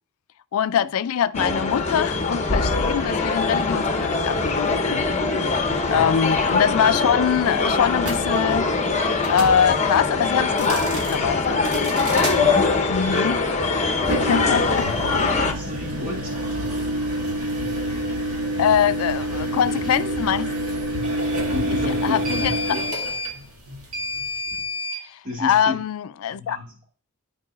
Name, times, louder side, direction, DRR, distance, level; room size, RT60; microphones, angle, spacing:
voice 1, 0.5-5.1 5.9-8.7 9.3-11.7 12.9-13.4 14.1-14.9 18.6-20.5 21.9-22.5 25.0-26.6, left 8 dB, 75° left, 0.3 m, -23 dB
sound 1, 1.3-15.5, left 3 dB, 30° left, 0.7 m, -22 dB
voice 2, 5.7-6.1 12.3-12.7 15.0-16.4 18.4-18.8 19.5-20.4 21.5-22.8 25.2-25.8 26.3-26.7, left 2 dB, 40° right, 1.8 m, -34 dB
sound 2, 8.0-8.2 9.2-9.6 10.5-11.2 11.6-12.4 14.0-25.0, equal, 80° right, 1.9 m, -27 dB
12.0 x 4.8 x 2.3 m
head